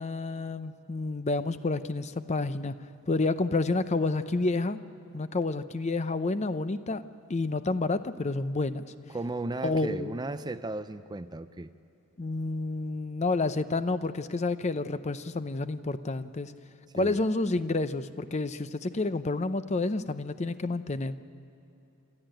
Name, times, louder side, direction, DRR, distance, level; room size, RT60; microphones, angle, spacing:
voice 1, 0.0-2.8 3.1-4.8 5.1-7.0 7.3-8.8 9.6-10.2 12.2-16.5 16.9-21.2, left 3 dB, 30° left, 12 dB, 0.6 m, -29 dB
voice 2, 9.1-11.7 17.0-17.2, right 2 dB, 20° right, 12 dB, 0.4 m, -35 dB
28.0 x 13.0 x 9.0 m, 2.9 s
head